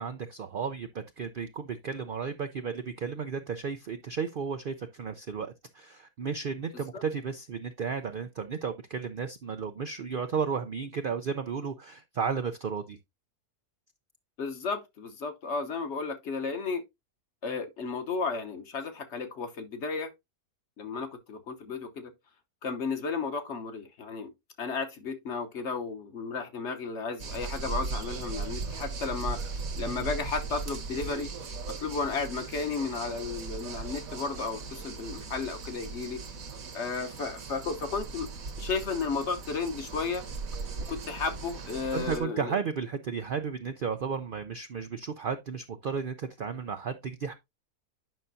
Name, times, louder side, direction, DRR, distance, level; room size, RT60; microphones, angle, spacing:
voice 1, 0.0-13.0 41.9-47.3, right 6 dB, 85° right, 0.4 m, -33 dB
voice 2, 14.4-16.8 17.4-20.1 20.8-22.1 22.6-24.3 24.6-29.4 29.8-31.3 31.8-36.2 36.7-38.3 38.6-40.3 40.9-42.6, left 4 dB, 50° left, 1.1 m, -33 dB
sound 1, 27.2-42.2, right 4 dB, 65° right, 1.5 m, -38 dB
9.2 x 5.6 x 2.6 m
omnidirectional pair, 1.6 m